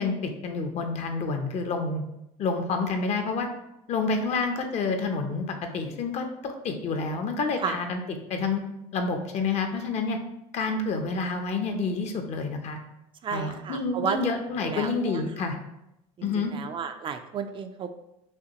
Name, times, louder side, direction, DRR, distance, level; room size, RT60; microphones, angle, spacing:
voice 1, 0.0-2.0 2.4-3.5 3.9-5.4 5.7-8.0 8.3-8.6 8.9-10.2 10.5-12.8 13.3-15.6 16.2-16.5, left 4 dB, 50° left, 5 dB, 0.7 m, -28 dB
voice 2, 13.2-14.2 14.7-15.2 16.2-17.9, right 7 dB, 35° right, 7 dB, 0.4 m, -32 dB
5.6 x 2.7 x 2.9 m, 0.86 s
supercardioid pair, 110°, 15 cm